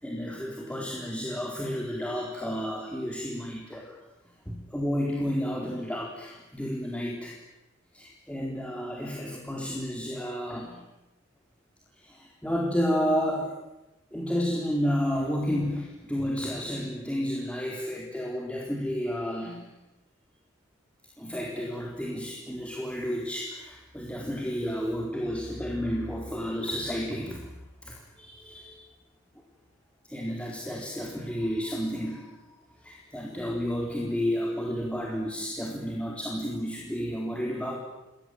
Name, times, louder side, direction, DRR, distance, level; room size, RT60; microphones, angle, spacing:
voice 1, 0.0-4.0 4.5-7.4 7.9-10.8 12.0-13.6 14.1-19.6 21.2-27.5 27.8-28.8 30.1-32.3 32.8-37.9, equal, 5° left, -1 dB, 4.1 m, -31 dB
30.0 x 21.5 x 9.3 m, 0.97 s
head